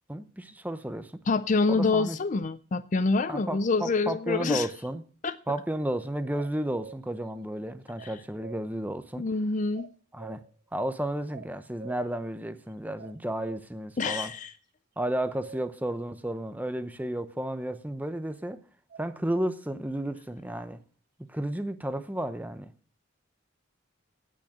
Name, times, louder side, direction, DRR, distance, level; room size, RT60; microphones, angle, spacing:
voice 1, 0.1-1.2 1.7-2.2 3.3-5.0 5.5-9.2 10.1-10.4 10.7-14.3 15.0-18.6 19.0-20.8 21.3-22.7, right 1 dB, 10° right, 0.8 m, -32 dB
voice 2, 1.3-4.7 5.2-5.4 8.0-8.1 9.2-9.9 14.0-14.5, left 3 dB, 40° left, 0.5 m, -26 dB
sound 1, 6.3-7.0 8.0-8.6 9.7-10.5 11.3-12.1 13.0-13.7 15.0-15.6 18.9-19.5, right 5 dB, 45° right, 0.5 m, -46 dB
17.5 x 6.3 x 6.4 m
head